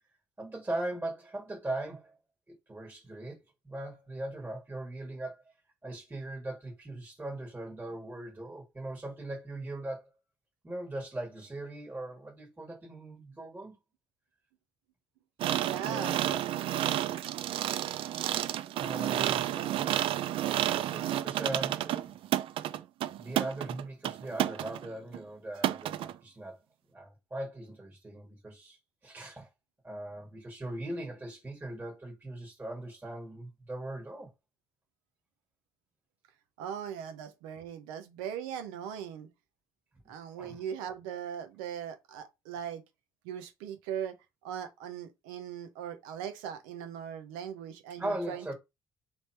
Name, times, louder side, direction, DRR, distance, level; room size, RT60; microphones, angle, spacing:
voice 1, 0.4-2.2 2.5-5.5 5.8-10.1 10.6-13.8 15.8-16.4 18.8-19.4 19.7-20.0 20.6-22.2 23.2-26.6 26.9-29.5 29.8-34.3 40.4-40.6 48.0-48.5, right 1 dB, 20° right, 1.5 m, -39 dB
sound 1, 15.4-24.9 25.1-25.2 25.6-26.1, right 12 dB, 65° right, 0.4 m, -31 dB
voice 2, 15.6-16.2 19.0-19.8 36.6-39.3 40.1-42.8 43.2-44.2 44.4-48.5, right 8 dB, 85° right, 0.8 m, -39 dB
3.4 x 3.0 x 4.4 m
hypercardioid pair, 60°, 10 cm